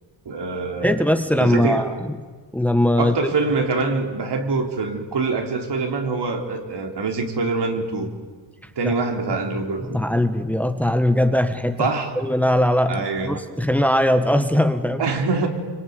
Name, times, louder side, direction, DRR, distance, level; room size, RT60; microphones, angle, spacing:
voice 1, 0.3-1.1 1.4-1.9 3.0-8.1 8.8-10.0 11.8-12.1 12.9-13.4 15.0-15.5, right 3 dB, 65° right, 4 dB, 3.9 m, -24 dB
voice 2, 0.8-2.1 2.5-3.1 8.8-8.9 9.9-11.9 12.1-15.0, left 1 dB, 5° left, 8 dB, 1.7 m, -20 dB
26.0 x 24.0 x 9.6 m, 1.5 s
cardioid pair, 100°, 44 cm